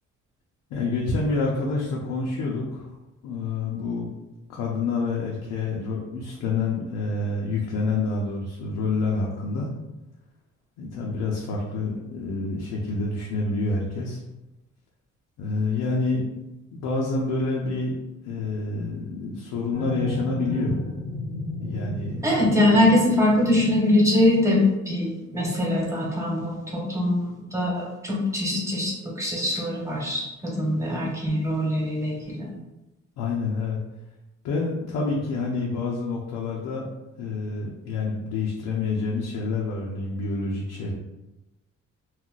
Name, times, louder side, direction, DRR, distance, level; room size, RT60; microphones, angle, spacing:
voice 1, 0.7-2.9 3.2-4.1 4.5-9.7 10.8-14.2 15.4-16.2 16.7-17.9 18.2-20.8 21.6-22.2 33.2-33.8 34.4-36.9 37.2-40.9, left 3 dB, 90° left, -3 dB, 0.6 m, -27 dB
sound 1, 19.7-24.9, left 1 dB, 30° left, 0.6 m, -33 dB
voice 2, 22.2-32.5, left 1 dB, 10° right, -4 dB, 1.1 m, -23 dB
2.5 x 2.1 x 3.7 m, 0.98 s
cardioid pair, 90°, 30 cm